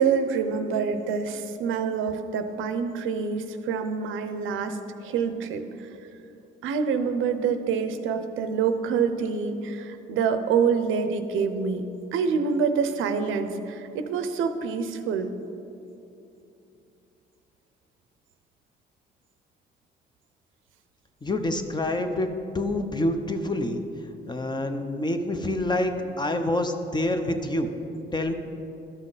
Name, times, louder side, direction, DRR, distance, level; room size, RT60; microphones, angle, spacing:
voice 1, 0.0-6.0 6.6-15.3, right 6 dB, 85° right, 9 dB, 0.6 m, -26 dB
voice 2, 21.2-22.3 22.5-23.8 24.3-27.7 28.1-28.3, left 1 dB, 20° left, 7 dB, 0.7 m, -27 dB
12.5 x 5.7 x 4.0 m, 2.8 s
cardioid pair, 90°, 20 cm